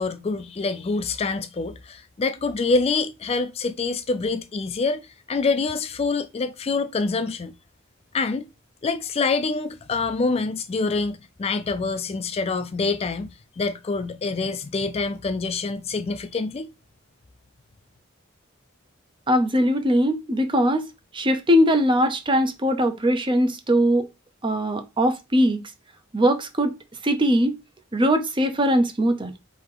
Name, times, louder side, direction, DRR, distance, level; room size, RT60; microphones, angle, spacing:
voice 1, 0.0-7.5 8.1-8.5 8.8-13.3 13.6-16.7, left 4 dB, 30° left, 0.4 m, -26 dB
voice 2, 19.3-20.9 21.1-24.1 24.4-25.6 26.1-26.7 27.0-27.6 27.9-29.3, equal, 25° right, 0.6 m, -21 dB
3.8 x 2.8 x 4.8 m
head